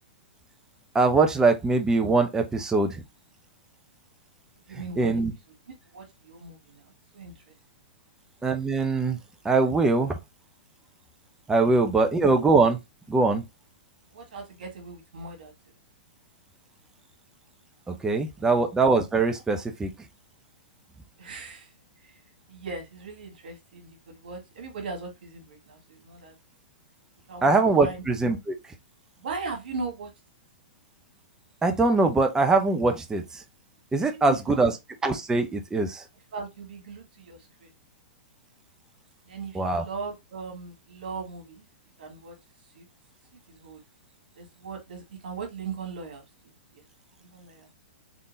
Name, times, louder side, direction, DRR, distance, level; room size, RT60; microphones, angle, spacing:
voice 1, 0.9-3.0 5.0-5.3 8.4-9.2 9.4-10.2 11.5-12.8 13.1-13.4 17.9-19.9 27.4-28.6 31.6-33.4 33.9-34.7 35.0-36.0 39.5-39.8, right 3 dB, 10° right, 0.7 m, -22 dB
voice 2, 4.7-5.2 5.7-7.5 12.0-12.1 14.1-15.5 18.4-18.7 21.2-21.7 22.0-22.2 22.5-26.3 27.3-28.4 29.2-30.1 34.1-34.6 36.3-37.7 39.3-41.6 42.0-42.4 42.7-42.9 43.3-43.8 44.4-46.2 46.7-46.8 47.2-47.7, right 4 dB, 70° right, 1.8 m, -39 dB
3.7 x 3.5 x 2.6 m
hypercardioid pair, 115°, 5 cm